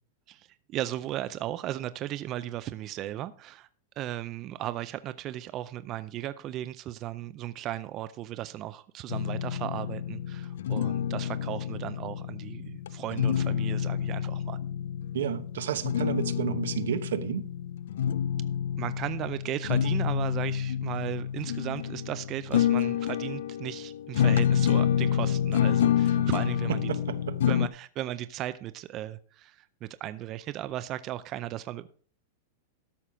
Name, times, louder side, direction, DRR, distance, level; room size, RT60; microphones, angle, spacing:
voice 1, 0.3-3.7 4.0-14.6 18.8-26.9 27.4-31.9, right 13 dB, 25° right, 0.4 m, -36 dB
sound 1, 9.1-27.7, left 9 dB, 75° left, 0.4 m, -28 dB
voice 2, 15.1-17.5 26.1-26.3 26.7-27.4, right 9 dB, 85° right, 0.9 m, -31 dB
12.5 x 5.9 x 5.0 m
supercardioid pair, 165°, 0 cm